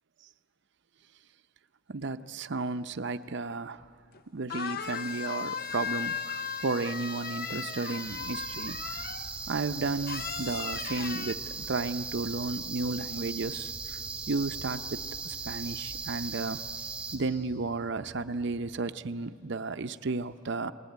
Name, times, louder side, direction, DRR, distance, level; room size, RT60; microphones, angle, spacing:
voice 1, 1.9-3.8 4.3-9.1 9.5-14.0 14.3-16.6 17.1-20.7, right 3 dB, 60° right, 11 dB, 0.7 m, -33 dB
sound 1, 4.1-4.2 4.5-9.3 10.1-11.3, left 7 dB, 50° left, 0.6 m, -37 dB
sound 2, 4.8-17.2, right 4 dB, 5° right, 2.9 m, -39 dB
sound 3, 8.0-18.8, right 1 dB, 20° left, 2.5 m, -51 dB
28.0 x 19.5 x 9.4 m, 2.5 s
head